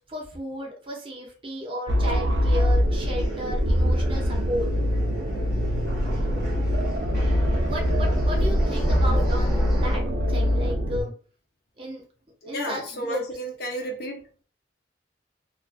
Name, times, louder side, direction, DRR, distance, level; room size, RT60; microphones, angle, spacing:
voice 1, 0.0-4.7 7.6-11.1 11.8-12.0 12.4-13.2, equal, 30° right, 0.7 m, -34 dB
sound 1, 1.9-11.0, equal, 65° right, 0.5 m, -23 dB
sound 2, 2.6-10.0, equal, 20° left, 1.1 m, -37 dB
voice 2, 12.4-14.2, equal, 55° left, 0.6 m, -32 dB
2.5 x 2.3 x 2.4 m
head